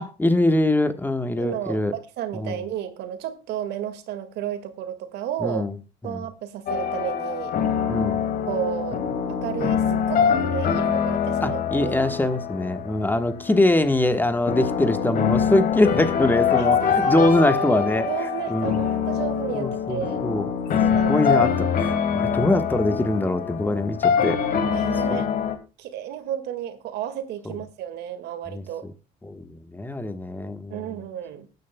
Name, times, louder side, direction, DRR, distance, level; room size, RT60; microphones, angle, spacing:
voice 1, 0.0-1.9 2.3-2.6 5.4-5.7 6.0-6.2 7.9-8.2 11.4-18.8 19.5-20.5 21.1-24.5 24.9-25.3 27.4-27.6 28.5-28.9 29.2-31.0, left 1 dB, 10° left, 1.3 m, -23 dB
voice 2, 1.4-5.6 6.0-7.6 8.5-9.0 9.3-12.0 16.6-17.2 18.1-20.2 20.8-21.2 24.7-25.3 25.8-28.8 30.7-31.5, right 10 dB, 80° right, 1.9 m, -32 dB
sound 1, 6.7-25.5, left 7 dB, 60° left, 2.2 m, -24 dB
19.5 x 9.4 x 2.2 m
cardioid pair, 110°, 17 cm